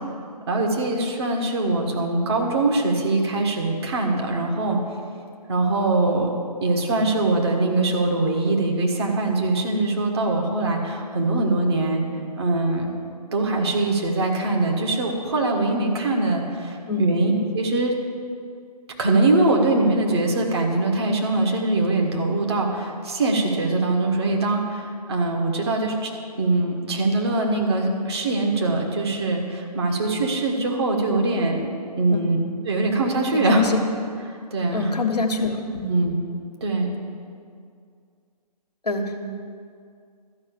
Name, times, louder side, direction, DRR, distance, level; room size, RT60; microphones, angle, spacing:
voice 1, 0.5-4.8 5.5-6.3 6.6-12.0 12.4-12.9 13.3-17.9 19.0-26.1 26.4-31.7 32.0-32.4 32.6-33.7 34.3-34.9 35.8-36.2 36.6-36.9, right 2 dB, 40° right, 1 dB, 1.8 m, -22 dB
voice 2, 33.3-33.8 34.7-35.9 38.8-39.2, left 3 dB, 75° left, 3 dB, 1.4 m, -25 dB
12.5 x 5.7 x 8.5 m, 2.2 s
figure-of-eight pair, 140°, 21 cm